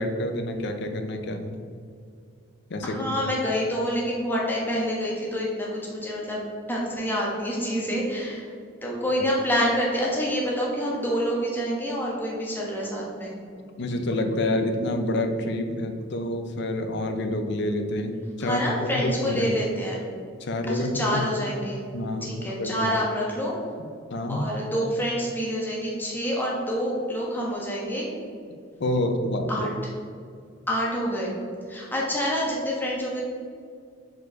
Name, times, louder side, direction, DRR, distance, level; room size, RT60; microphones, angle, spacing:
voice 1, 0.0-1.6 2.7-3.0 9.2-9.3 13.8-19.6 20.4-21.2 21.9-22.9 24.1-24.5 28.8-29.7, left 1 dB, 60° left, 6 dB, 0.6 m, -28 dB
voice 2, 2.8-8.5 8.8-13.3 18.4-20.0 20.7-21.8 22.2-23.5 24.3-28.1 29.5-29.7 30.7-31.3 31.7-33.2, equal, 10° left, -4 dB, 1.2 m, -27 dB
4.7 x 4.6 x 4.6 m, 2.3 s
head